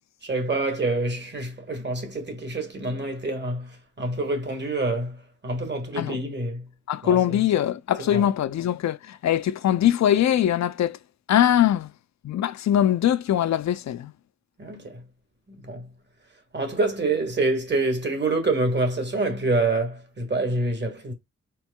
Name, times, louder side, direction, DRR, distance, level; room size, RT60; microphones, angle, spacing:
voice 1, 0.2-6.7 7.0-7.4 8.0-8.3 14.6-15.0 15.5-15.9 16.5-21.1, right 2 dB, 35° right, 1.6 m, -27 dB
voice 2, 6.9-11.0 11.3-11.9 12.2-14.1, left 11 dB, 65° left, 0.5 m, -22 dB
4.5 x 4.4 x 2.2 m
wide cardioid pair, 100°, 29 cm